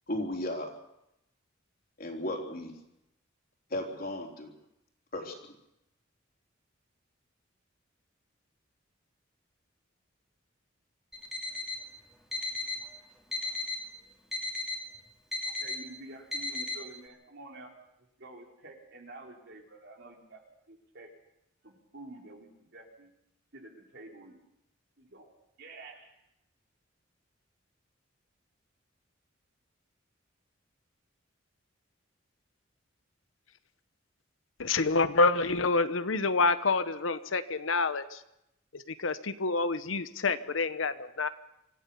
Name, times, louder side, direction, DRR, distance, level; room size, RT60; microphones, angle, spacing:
voice 1, 0.1-0.7 2.0-2.7 3.7-4.5 5.1-5.3, left 1 dB, 50° left, 1 dB, 3.9 m, -35 dB
Alarm, 11.1-11.8 12.3-12.8 13.3-13.8 14.3-14.8 15.3-15.8 16.3-16.8, left 2 dB, ahead, 3.1 m, -35 dB
voice 2, 15.6-17.7 18.2-20.4 20.7-21.1 21.6-23.1 23.5-24.4 25.0-25.3 25.6-26.1, right 2 dB, 60° right, 1 dB, 3.9 m, -49 dB
voice 3, 34.6-38.2 38.7-41.3, left 3 dB, 85° left, 12 dB, 1.0 m, -27 dB
25.5 x 15.5 x 7.0 m, 0.84 s
head